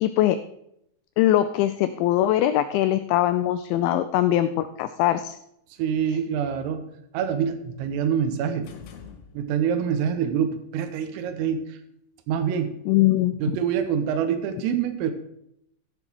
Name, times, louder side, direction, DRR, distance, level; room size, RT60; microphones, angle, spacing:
voice 1, 0.0-0.4 1.2-5.4 12.9-13.3, left 13 dB, 90° left, 11 dB, 2.6 m, -21 dB
voice 2, 5.8-6.9 7.1-8.7 9.4-11.8 12.3-12.7 13.4-15.1, right 8 dB, 90° right, 8 dB, 3.6 m, -25 dB
sound 1, 8.6-9.9, left 7 dB, 70° left, 3.2 m, -45 dB
14.0 x 5.9 x 6.1 m, 0.76 s
omnidirectional pair, 5.8 m